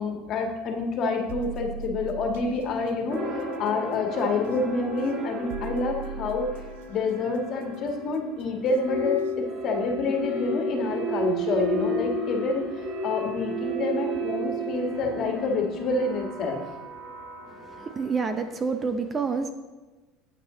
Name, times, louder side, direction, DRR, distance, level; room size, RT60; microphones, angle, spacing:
voice 1, 0.0-6.5 6.9-9.2 9.6-16.6, left 3 dB, 45° left, 2 dB, 1.7 m, -28 dB
sound 1, 1.3-2.6 4.4-4.6 5.5-6.8 8.6-8.8 9.3-9.4, right 8 dB, 90° right, 0.5 m, -38 dB
sound 2, 3.1-18.4, right 1 dB, 45° right, 2.9 m, -33 dB
voice 2, 17.5-19.5, right 5 dB, 25° right, 8 dB, 0.7 m, -28 dB
8.6 x 8.4 x 3.9 m, 1.2 s
supercardioid pair, 125°, 0 cm